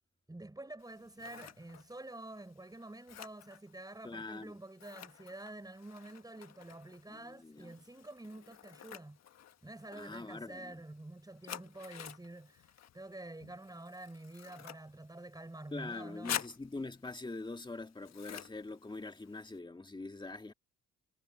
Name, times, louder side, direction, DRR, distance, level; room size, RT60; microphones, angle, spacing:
voice 1, 0.3-9.2 9.6-12.7 12.9-16.4, right 2 dB, 10° right, 7.1 m, -48 dB
Scissors, 0.8-19.6, left 10 dB, 60° left, 1.4 m, -49 dB
voice 2, 4.0-4.6 7.1-7.7 9.9-10.8 15.7-20.5, left 3 dB, 15° left, 1.9 m, -43 dB
cardioid pair, 90°, 30 cm